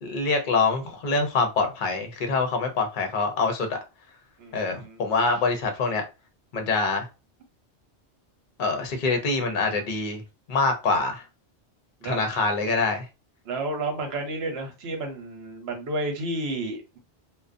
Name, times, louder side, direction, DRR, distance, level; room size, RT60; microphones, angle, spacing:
voice 1, 0.0-3.8 4.5-6.0 6.5-7.1 8.6-10.2 10.5-11.2 12.0-13.1, left 3 dB, 55° left, 0.7 m, -25 dB
voice 2, 4.4-5.0 12.0-12.2 13.4-17.0, right 2 dB, 70° right, 1.0 m, -31 dB
2.4 x 2.1 x 2.4 m
omnidirectional pair, 1.1 m